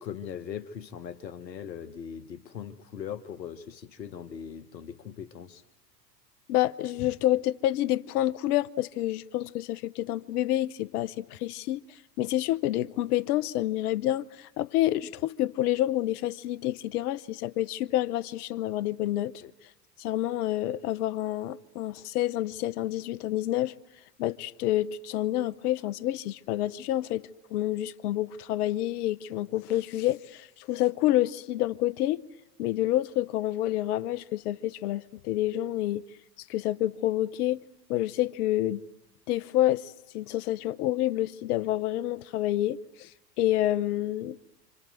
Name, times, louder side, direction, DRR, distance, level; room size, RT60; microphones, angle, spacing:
voice 1, 0.0-5.6 19.4-19.5, left 8 dB, 90° left, 1.3 m, -40 dB
voice 2, 6.5-11.8 12.2-19.3 20.0-23.7 24.2-32.2 32.6-36.0 36.5-37.6 37.9-38.8 39.3-43.1 43.4-44.4, left 14 dB, 65° left, 1.1 m, -28 dB
28.0 x 26.5 x 7.8 m
hypercardioid pair, 90°, 49 cm